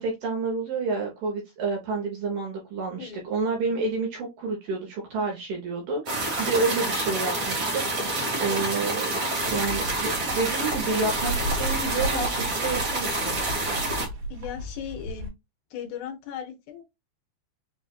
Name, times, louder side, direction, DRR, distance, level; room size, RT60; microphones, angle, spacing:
voice 1, 0.0-9.1 9.5-13.4, right 3 dB, 65° right, 2.3 m, -29 dB
sound 1, 6.1-14.1, right 2 dB, 45° right, 1.9 m, -28 dB
sound 2, 9.4-15.3, right 1 dB, 90° right, 3.6 m, -34 dB
voice 2, 14.3-15.3 15.7-16.8, left 8 dB, 75° left, 2.3 m, -37 dB
7.3 x 2.5 x 2.4 m
omnidirectional pair, 4.9 m